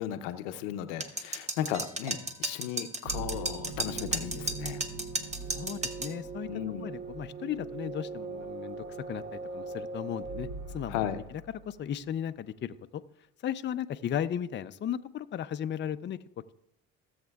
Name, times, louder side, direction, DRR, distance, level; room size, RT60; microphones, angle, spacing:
voice 1, 0.0-4.8 6.5-6.9 10.9-11.2, left 10 dB, 90° left, 10 dB, 0.7 m, -35 dB
sound 1, 1.0-6.1, right 2 dB, 20° right, 1.0 m, -34 dB
sound 2, 3.0-11.7, right 3 dB, 60° right, 2.1 m, -40 dB
voice 2, 5.5-6.5 6.8-13.0 13.4-16.2, left 9 dB, 35° left, 11 dB, 0.5 m, -36 dB
17.0 x 7.3 x 2.3 m, 0.79 s
supercardioid pair, 70°, 34 cm